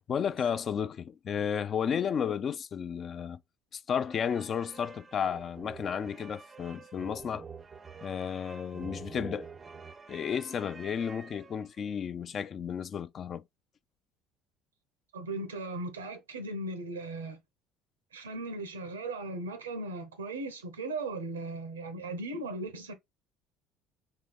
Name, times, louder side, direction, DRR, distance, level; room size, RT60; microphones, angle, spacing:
voice 1, 0.1-3.4 3.7-7.5 8.0-9.5 10.1-13.4, left 7 dB, 45° left, 0.3 m, -33 dB
sound 1, 4.0-11.9, right 5 dB, 30° right, 0.5 m, -48 dB
voice 2, 15.1-17.4 18.1-22.9, right 2 dB, 85° right, 0.7 m, -37 dB
3.7 x 3.3 x 3.2 m
hypercardioid pair, 60°, 0 cm